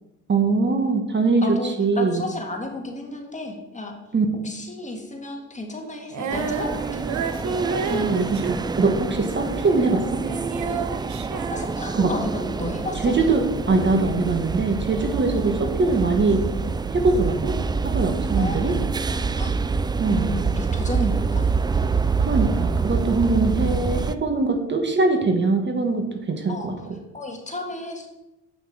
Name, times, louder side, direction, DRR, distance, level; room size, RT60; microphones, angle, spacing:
voice 1, 0.3-2.2 4.1-4.4 7.9-10.2 12.0-12.1 13.0-16.4 16.9-17.5 17.8-18.7 20.0-20.3 21.0-21.1 22.2-26.7, right 3 dB, 35° right, 4 dB, 1.3 m, -22 dB
voice 2, 1.4-4.0 4.4-7.0 11.5-13.1 18.4-18.8 19.1-19.5 20.1-21.4 26.5-26.7 27.1-28.1, left 2 dB, 25° left, 2 dB, 1.7 m, -33 dB
Female singing, 6.1-10.0 10.2-12.3, right 5 dB, 70° right, 1.0 m, -30 dB
sound 1, 6.3-24.2, right 4 dB, 15° right, 0.3 m, -26 dB
8.1 x 6.0 x 4.8 m, 0.94 s
cardioid pair, 90°, 30 cm